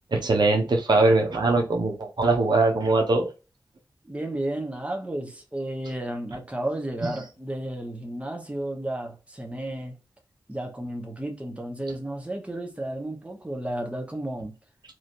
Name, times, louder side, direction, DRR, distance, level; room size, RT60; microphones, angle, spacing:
voice 1, 0.1-3.3, right 2 dB, 60° right, 1.0 m, -21 dB
voice 2, 4.1-9.9 10.5-14.5, right 1 dB, 15° right, 1.0 m, -32 dB
3.0 x 2.7 x 2.6 m
cardioid pair, 45°, 8 cm